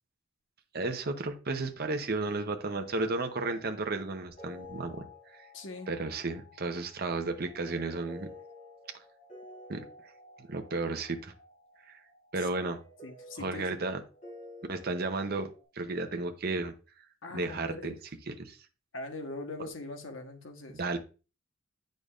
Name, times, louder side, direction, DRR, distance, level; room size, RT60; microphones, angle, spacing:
voice 1, 0.7-5.5 5.9-8.3 9.7-9.9 10.4-11.3 11.9-12.0 12.3-12.8 13.4-14.0 14.7-15.5 15.7-16.7 17.3-17.9 18.3-18.6 20.7-21.0, right 3 dB, 50° right, 0.7 m, -33 dB
sound 1, 2.7-15.6, left 1 dB, 40° left, 3.5 m, -52 dB
voice 2, 5.5-5.9 12.4-12.7 13.0-13.8 17.2-17.9 18.9-20.8, left 2 dB, 70° left, 1.2 m, -42 dB
8.4 x 5.2 x 2.4 m
head